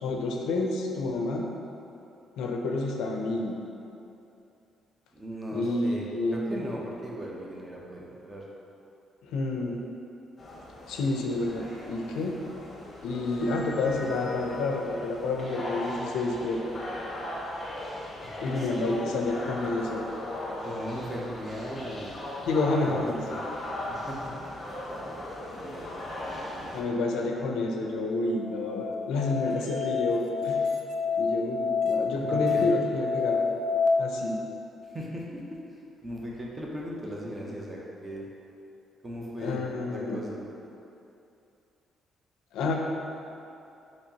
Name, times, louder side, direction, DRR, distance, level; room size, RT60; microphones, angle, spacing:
voice 1, 0.0-1.5 2.4-3.6 5.5-6.6 9.2-9.8 10.9-12.3 13.0-16.6 18.4-20.0 22.5-23.2 26.7-30.6 31.2-33.4 34.0-34.4 39.4-40.2 42.5-42.7, left 2 dB, 90° left, 1 dB, 0.4 m, -29 dB
voice 2, 5.1-8.4 18.2-19.3 20.6-22.2 22.8-23.4 23.9-24.3 24.9-26.9 27.2-28.1 32.2-32.6 34.8-35.4 35.7-38.3 39.0-40.4, equal, 25° right, -3 dB, 0.7 m, -39 dB
sound 1, 10.4-26.8, left 1 dB, 35° left, 0.7 m, -38 dB
Musical instrument, 28.2-33.9, left 5 dB, 65° right, 0.3 m, -28 dB
4.3 x 2.9 x 2.8 m, 2.8 s
cardioid pair, 90°, 0 cm